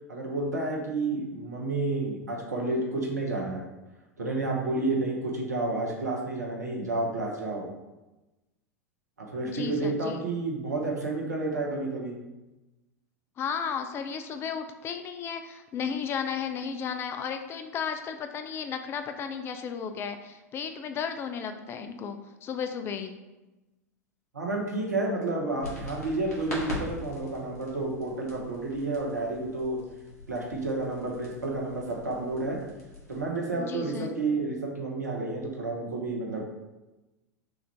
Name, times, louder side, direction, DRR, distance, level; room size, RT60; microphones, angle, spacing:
voice 1, 0.1-3.6 4.2-7.6 9.2-12.2 24.3-29.8 30.3-32.6 33.1-36.4, right 2 dB, 75° right, -1 dB, 1.0 m, -30 dB
voice 2, 9.4-10.2 13.4-23.1 33.6-34.1, left 7 dB, 25° left, 7 dB, 0.4 m, -34 dB
sound 1, 25.6-33.2, left 1 dB, 70° left, 1.4 m, -42 dB
6.0 x 2.5 x 3.4 m, 1.1 s
figure-of-eight pair, 85°, 9 cm